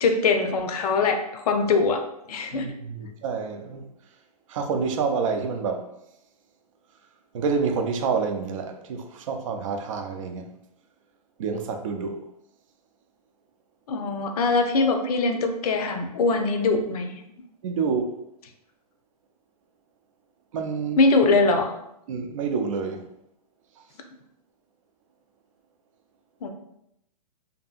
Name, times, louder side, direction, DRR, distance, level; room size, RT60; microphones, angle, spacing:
voice 1, 0.0-2.0 2.3-2.7 13.9-17.1 21.0-21.7 26.4-26.5, left 3 dB, 70° left, 0.5 m, -22 dB
voice 2, 2.5-3.9 4.5-5.9 7.3-10.5 11.4-12.2 17.6-18.1 20.5-21.0 22.1-23.1, right 5 dB, 55° right, 0.4 m, -28 dB
2.7 x 2.6 x 2.3 m
hypercardioid pair, 150°, 20 cm